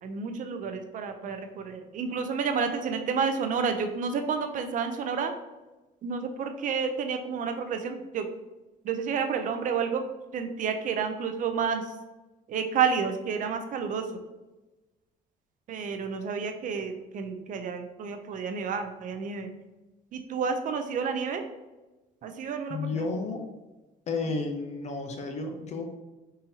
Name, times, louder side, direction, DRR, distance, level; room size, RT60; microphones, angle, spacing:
voice 1, 0.0-5.3 6.0-8.3 8.8-10.0 10.3-11.9 12.5-14.1 15.7-19.5 20.1-21.5 22.2-23.0, right 6 dB, 50° right, 7 dB, 0.5 m, -30 dB
voice 2, 22.7-23.5 24.1-25.8, left 3 dB, 40° left, 4 dB, 0.6 m, -32 dB
3.7 x 2.7 x 2.7 m, 1.1 s
cardioid pair, 110°, 17 cm